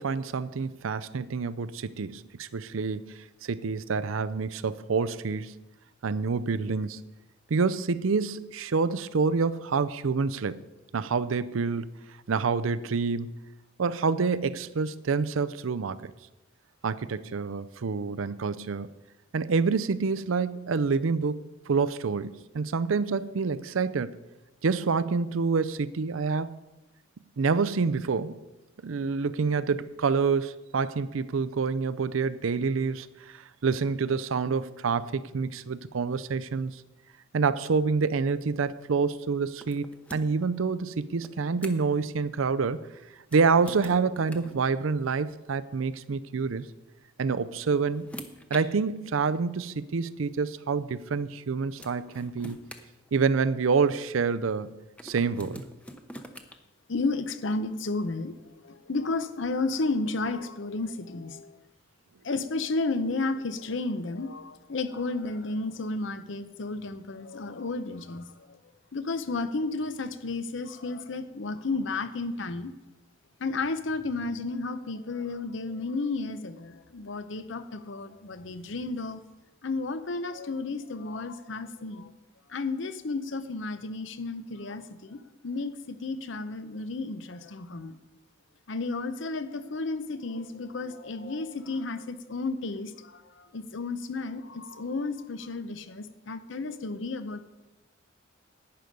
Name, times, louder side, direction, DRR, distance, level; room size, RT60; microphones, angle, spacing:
voice 1, 0.0-5.5 6.0-7.0 7.5-10.6 10.9-11.9 12.3-13.3 13.8-16.1 16.8-18.9 19.3-24.2 24.6-26.5 27.4-28.4 28.8-36.8 37.3-42.9 43.3-46.7 47.2-48.1 48.5-52.6 53.1-54.8 55.0-55.7, right 5 dB, 90° right, 0.5 m, -27 dB
sound 1, 39.6-40.5 41.2-42.0 43.2-44.6 45.9-46.0 47.2-48.6 49.6-49.7 51.3-51.4 51.8-53.6 55.0-56.5, equal, 5° left, 0.8 m, -45 dB
voice 2, 56.9-61.6 62.2-68.6 68.9-72.7 73.4-79.2 79.6-82.1 82.5-85.2 85.4-88.0 88.7-97.4, left 3 dB, 65° left, 0.7 m, -32 dB
11.0 x 9.4 x 5.3 m
head